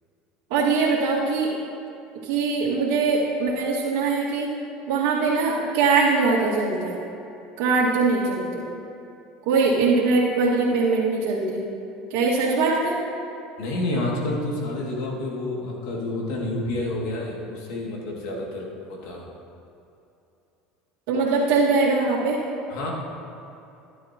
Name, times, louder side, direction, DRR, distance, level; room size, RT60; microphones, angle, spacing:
voice 1, 0.5-1.5 2.2-4.5 4.9-7.0 7.6-8.6 9.5-11.6 12.1-12.9 21.1-22.4, right 4 dB, 75° right, -8 dB, 2.0 m, -22 dB
voice 2, 13.6-19.3 22.7-22.9, left 2 dB, 75° left, -2 dB, 2.3 m, -29 dB
13.5 x 11.0 x 3.0 m, 2.8 s
supercardioid pair, 95°, 0 cm